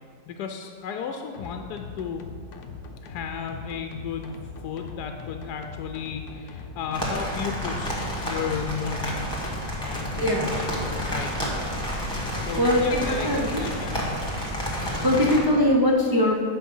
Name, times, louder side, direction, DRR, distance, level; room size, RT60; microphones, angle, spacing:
voice 1, 0.3-2.2 3.0-4.4 4.6-9.3 9.8-11.6 12.3-14.1 14.9-15.2, left 7 dB, 80° left, 5 dB, 1.1 m, -34 dB
sound 1, 1.3-8.1, left 5 dB, 60° left, 0.9 m, -41 dB
sound 2, 6.9-15.4, equal, 15° left, 1.7 m, -30 dB
voice 2, 10.2-10.5 11.7-13.0 13.2-13.6 14.6-16.3, left 1 dB, 35° right, -3 dB, 0.3 m, -23 dB
8.6 x 5.8 x 5.4 m, 2.1 s
omnidirectional pair, 1.7 m